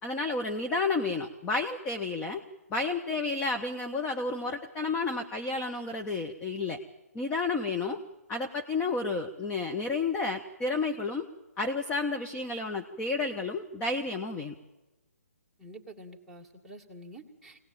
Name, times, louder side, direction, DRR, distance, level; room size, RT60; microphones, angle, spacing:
voice 1, 0.0-2.4 2.7-6.8 7.1-8.0 8.3-11.3 11.6-14.5, left 3 dB, 15° left, 5 dB, 1.1 m, -31 dB
voice 2, 15.6-17.6, right 1 dB, ahead, -3 dB, 2.4 m, -48 dB
23.5 x 18.5 x 8.9 m, 1.1 s
figure-of-eight pair, 135°, 9 cm